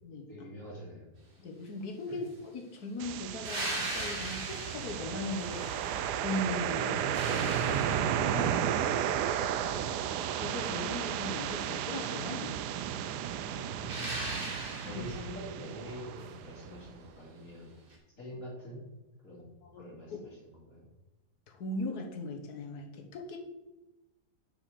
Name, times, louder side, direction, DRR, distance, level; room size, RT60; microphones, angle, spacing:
voice 1, 0.3-1.1 2.1-2.2 6.8-7.0 9.6-10.0 13.5-17.8 18.2-18.8 19.2-20.9, equal, 50° left, -6 dB, 3.2 m, -46 dB
voice 2, 1.4-2.3 2.5-7.0 7.3-8.6 10.4-12.6 14.7-15.0 19.6-19.9 21.5-23.4, left 2 dB, 70° left, 2 dB, 1.7 m, -39 dB
sound 1, 3.0-16.9, right 9 dB, 85° right, 1.1 m, -33 dB
sound 2, 3.4-6.4 6.8-8.5 13.9-15.3 17.9-18.0, right 2 dB, 35° right, 1.8 m, -39 dB
6.7 x 5.9 x 6.7 m, 1.0 s
omnidirectional pair, 1.7 m